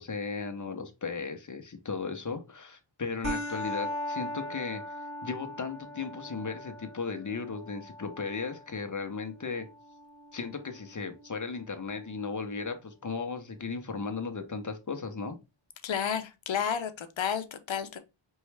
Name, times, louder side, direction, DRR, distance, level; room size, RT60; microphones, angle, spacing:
voice 1, 0.0-4.8 5.2-9.7 10.3-15.4, left 4 dB, 35° left, 0.8 m, -36 dB
sound 1, 3.2-12.2, left 1 dB, 30° right, 1.5 m, -40 dB
voice 2, 15.8-18.0, left 8 dB, 65° left, 0.8 m, -31 dB
4.5 x 3.1 x 3.3 m
wide cardioid pair, 120°, 50 cm